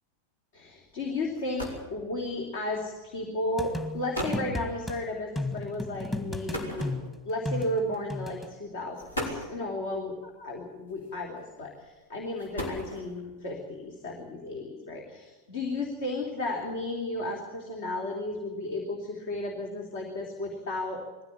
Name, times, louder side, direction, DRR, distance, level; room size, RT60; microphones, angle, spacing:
voice 1, 0.5-6.9 7.2-21.0, left 2 dB, 55° left, 1 dB, 3.2 m, -34 dB
sound 1, 1.0-1.1 1.3-2.0 2.9-3.2 3.8-3.9 4.1-4.5 6.5-7.4 8.3-8.4 8.9-9.6 10.9-11.4 12.2-13.2, equal, 75° left, 5.4 m, -36 dB
sound 2, 3.6-5.0 5.4-8.5, left 2 dB, 10° left, 2.1 m, -34 dB
21.0 x 15.5 x 8.5 m, 1.3 s
figure-of-eight pair, 90°, 0 cm